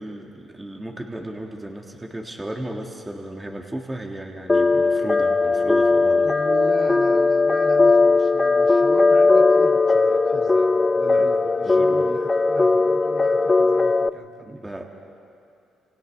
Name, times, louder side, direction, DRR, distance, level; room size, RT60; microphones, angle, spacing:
voice 1, 0.0-6.3 11.2-11.3 11.6-12.1 14.4-14.8, right 1 dB, 15° right, 1 dB, 1.8 m, -34 dB
sound 1, 4.5-14.1, left 3 dB, 25° left, 0.4 m, -18 dB
voice 2, 6.2-14.6, right 3 dB, 50° right, 1 dB, 2.4 m, -37 dB
29.0 x 27.5 x 3.5 m, 2.7 s
cardioid pair, 90°, 0 cm